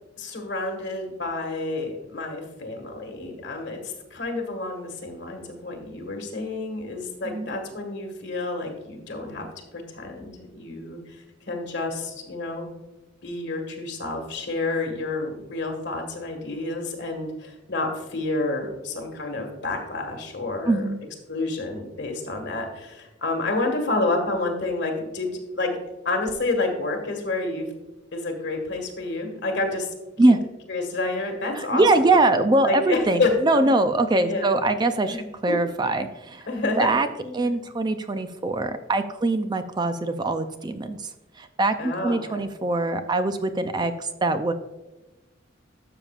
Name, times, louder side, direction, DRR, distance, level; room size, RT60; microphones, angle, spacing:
voice 1, 0.2-9.5 9.7-11.0 11.5-12.7 13.2-20.9 21.3-25.8 26.1-27.7 28.1-29.9 30.7-31.8 32.6-33.3 33.6-33.7 34.2-34.5 35.1-35.6 36.5-37.5 41.8-42.4, left 2 dB, 60° left, 3 dB, 1.8 m, -29 dB
voice 2, 20.7-21.0 30.2-30.4 31.6-35.2 35.4-36.5 36.8-37.1 37.3-41.1 41.4-44.5, right 2 dB, 20° right, 9 dB, 0.4 m, -22 dB
12.0 x 6.8 x 2.4 m, 1.1 s
head